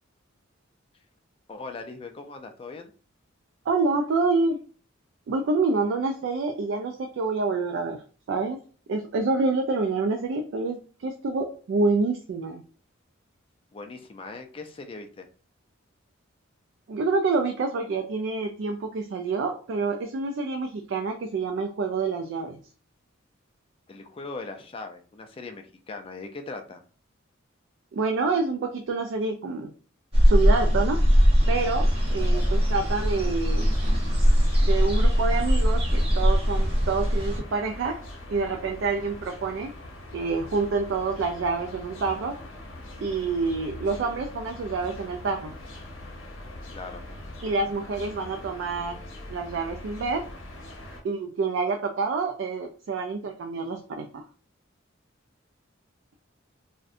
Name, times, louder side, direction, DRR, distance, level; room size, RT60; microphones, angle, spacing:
voice 1, 1.5-2.9 13.7-15.3 23.9-26.8 46.7-47.1, left 3 dB, 25° left, 5 dB, 0.3 m, -39 dB
voice 2, 3.7-4.6 5.3-8.0 8.3-8.6 8.9-12.6 16.9-22.6 27.9-29.7 30.2-31.0 31.5-33.7 34.6-38.0 38.3-39.7 40.1-42.4 43.0-45.5 47.4-49.0 49.3-50.2 51.0-54.2, right 3 dB, 60° right, 3 dB, 0.3 m, -27 dB
sound 1, 30.1-37.4, equal, 30° right, 0.7 m, -21 dB
sound 2, 31.4-51.0, left 1 dB, 70° left, 0.7 m, -42 dB
2.6 x 2.1 x 2.4 m, 0.39 s
head